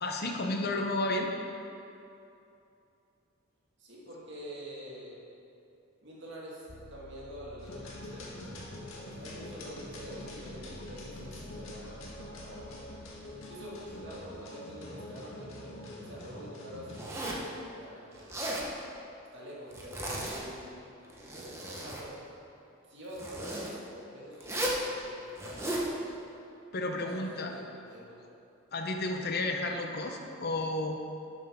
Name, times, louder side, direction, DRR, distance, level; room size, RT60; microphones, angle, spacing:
voice 1, 0.0-1.3 26.7-27.5 28.7-31.0, left 2 dB, 50° left, 3 dB, 0.8 m, -32 dB
voice 2, 3.8-5.2 6.0-12.8 13.4-18.6 19.3-20.8 21.3-22.2 22.9-26.1 27.1-28.2, equal, 60° right, -5 dB, 2.2 m, -46 dB
sound 1, 6.7-14.3, left 1 dB, 20° left, 0.5 m, -53 dB
sound 2, 7.6-17.0, left 1 dB, 85° left, 1.7 m, -45 dB
Zipper (clothing), 16.9-17.5 18.2-18.7 19.7-20.4 21.0-22.1 23.1-23.7 24.4-24.8 25.4-25.9, right 1 dB, 15° right, 1.1 m, -35 dB
11.5 x 7.2 x 3.7 m, 2.7 s
head